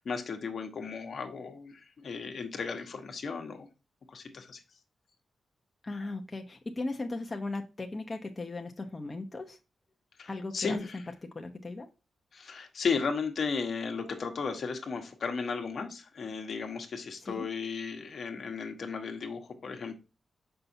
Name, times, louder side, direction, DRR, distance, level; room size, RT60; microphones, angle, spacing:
voice 1, 0.0-3.7 4.1-4.6 10.2-11.0 12.3-19.9, left 5 dB, 65° left, 1.2 m, -35 dB
voice 2, 5.8-9.6 10.3-10.8 11.3-11.9 17.2-17.5, left 2 dB, 30° left, 0.8 m, -37 dB
6.8 x 5.6 x 2.7 m
cardioid pair, 85°, 0 cm